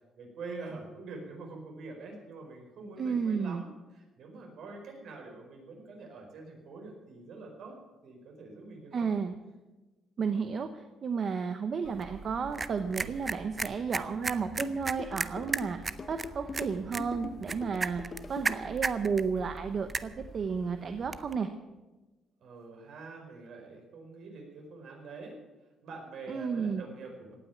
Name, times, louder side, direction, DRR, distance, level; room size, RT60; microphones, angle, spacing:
voice 1, 0.2-7.7 8.0-9.1 22.4-25.4 25.8-27.3, right 3 dB, 55° right, 2 dB, 4.7 m, -45 dB
voice 2, 3.0-3.6 8.9-9.3 10.2-15.8 16.1-18.0 18.3-21.5 26.3-26.8, right 5 dB, 40° right, 8 dB, 0.8 m, -32 dB
sound 1, 11.8-21.4, right 4 dB, 20° right, 0.5 m, -38 dB
sound 2, 14.6-18.6, left 4 dB, 30° left, 1.0 m, -42 dB
17.5 x 9.1 x 8.5 m, 1.1 s
cardioid pair, 155°, 0 cm